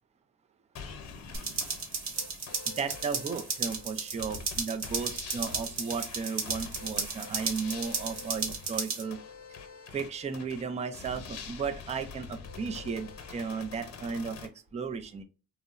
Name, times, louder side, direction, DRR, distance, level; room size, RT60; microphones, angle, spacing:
sound 1, 0.8-14.5, left 5 dB, 65° left, 0.8 m, -46 dB
sound 2, 1.3-9.0, right 5 dB, 65° right, 0.9 m, -34 dB
voice 1, 2.7-9.2 9.9-15.2, right 5 dB, 25° right, 9 dB, 0.4 m, -35 dB
2.7 x 2.0 x 2.4 m, 0.34 s
cardioid pair, 90°, 30 cm